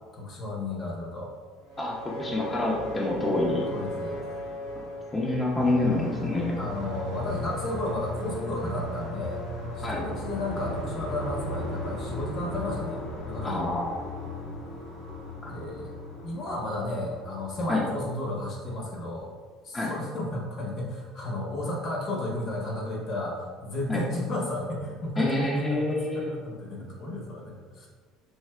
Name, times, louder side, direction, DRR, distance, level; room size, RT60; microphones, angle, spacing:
voice 1, 0.1-1.3 3.7-4.2 6.6-9.4 9.8-13.7 15.4-19.3 19.6-27.9, left 1 dB, 55° left, -2 dB, 0.8 m, -33 dB
sound 1, 1.6-18.5, left 1 dB, 90° left, 0.9 m, -36 dB
voice 2, 1.8-3.6 5.1-6.5 9.8-10.0 13.4-13.9 15.4-15.5 17.7-17.8 19.7-19.9 23.9-24.0 25.2-26.3, left 2 dB, 20° left, -4 dB, 0.5 m, -27 dB
3.2 x 2.7 x 2.3 m, 1.5 s
hypercardioid pair, 75°, 0 cm